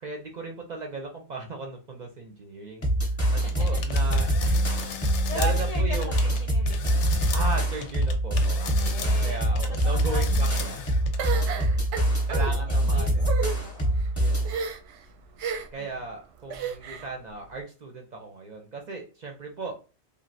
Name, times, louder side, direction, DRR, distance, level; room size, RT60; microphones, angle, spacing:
voice 1, 0.0-2.9 3.3-4.6 5.3-6.2 7.3-10.8 11.5-11.8 12.3-13.3 14.2-14.5 15.7-19.8, right 3 dB, 55° right, 2 dB, 0.5 m, -37 dB
sound 1, 2.8-14.5, right 1 dB, 15° left, 0.7 m, -24 dB
voice 2, 3.3-3.8 5.3-6.9 8.8-9.4 9.8-10.7 11.2-11.7 12.5-13.1 13.6-14.0 15.8-16.0, left 1 dB, 65° left, 0 dB, 0.4 m, -39 dB
sound 2, 3.5-6.4 6.6-11.3, left 7 dB, 90° left, 0.9 m, -36 dB
sound 3, 11.2-12.5 13.2-13.6 14.4-15.0 15.4-15.8 16.5-17.1, right 6 dB, 90° right, 0.9 m, -32 dB
3.2 x 2.5 x 2.5 m, 0.35 s
omnidirectional pair, 1.2 m